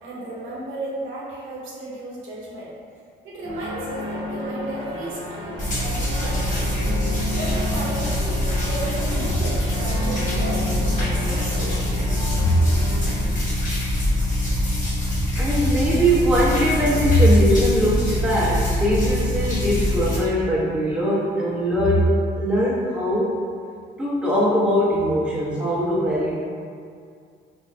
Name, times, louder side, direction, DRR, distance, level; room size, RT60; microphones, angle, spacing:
voice 1, 0.0-2.7 3.2-6.9 7.3-11.9, right 1 dB, 85° right, -6 dB, 0.8 m, -34 dB
sound 1, 3.4-13.2, left 1 dB, 25° right, 0.6 m, -32 dB
sound 2, 5.6-20.2, left 1 dB, 40° left, 1.2 m, -24 dB
voice 2, 15.4-23.3 24.0-26.3, equal, 5° right, -9 dB, 1.0 m, -20 dB
3.6 x 2.7 x 2.2 m, 2.2 s
cardioid pair, 90°, 20 cm